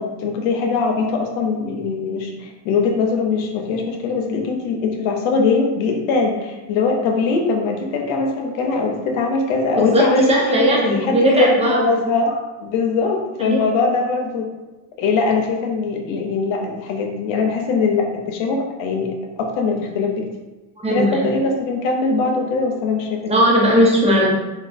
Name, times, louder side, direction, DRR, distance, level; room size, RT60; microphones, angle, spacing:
voice 1, 0.0-14.5 15.0-20.2 20.9-23.2, left 4 dB, 85° left, 1 dB, 0.7 m, -21 dB
voice 2, 9.7-11.8 13.4-13.6 20.8-21.3 23.3-24.3, equal, 15° right, -3 dB, 0.8 m, -17 dB
3.7 x 2.3 x 2.5 m, 1.1 s
cardioid pair, 95°, 45 cm